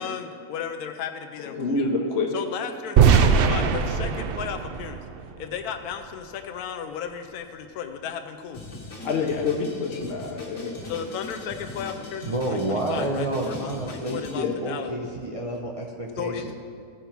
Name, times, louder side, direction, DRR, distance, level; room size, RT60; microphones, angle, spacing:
voice 1, 0.0-1.8 2.3-5.0 5.4-8.6 10.9-14.9 16.2-16.5, left 7 dB, 85° left, 7 dB, 1.1 m, -34 dB
voice 2, 1.5-2.3 9.0-10.9 14.3-14.5, left 4 dB, 50° left, 0 dB, 1.0 m, -27 dB
sound 1, 3.0-5.9, right 6 dB, 85° right, 0.5 m, -21 dB
Drum kit, 8.5-14.4, left 2 dB, 65° left, 1.9 m, -40 dB
voice 3, 12.2-16.5, right 1 dB, 35° right, -2 dB, 0.5 m, -29 dB
15.5 x 5.3 x 4.4 m, 2.2 s
omnidirectional pair, 1.5 m